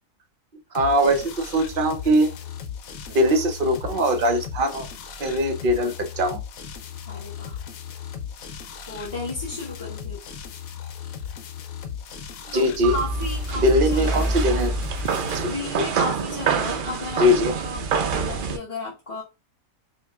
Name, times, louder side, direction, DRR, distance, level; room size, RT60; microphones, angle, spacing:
sound 1, 0.7-15.5, left 8 dB, 75° left, 1.0 m, -37 dB
voice 1, 0.7-2.3 3.1-4.9 5.2-6.4 12.5-13.0 13.6-14.7 15.3-15.5 17.2-17.5, equal, 50° right, 6 dB, 0.7 m, -21 dB
voice 2, 7.1-7.6 8.9-10.2 12.5-14.6 15.5-17.9 18.1-19.2, left 2 dB, 25° left, -6 dB, 0.9 m, -34 dB
sound 2, 12.8-18.6, right 4 dB, 85° right, 0.4 m, -26 dB
5.1 x 2.3 x 2.3 m, 0.27 s
omnidirectional pair, 1.5 m